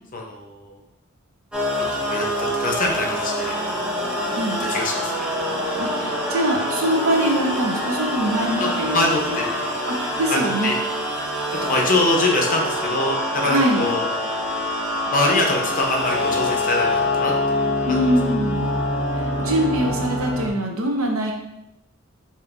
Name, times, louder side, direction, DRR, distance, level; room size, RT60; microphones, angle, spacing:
voice 1, 0.1-0.8 2.1-3.5 4.7-5.1 8.6-9.8 10.3-10.8 11.6-14.1 15.1-17.3 17.9-18.0, left 2 dB, 40° left, 0 dB, 0.7 m, -24 dB
sound 1, 1.5-20.5, left 1 dB, 5° right, 0.6 m, -25 dB
voice 2, 5.8-9.4 9.9-10.7 13.5-13.8 17.9-18.7 19.4-21.3, right 1 dB, 70° right, 2 dB, 0.7 m, -23 dB
5.0 x 2.8 x 2.5 m, 0.84 s
head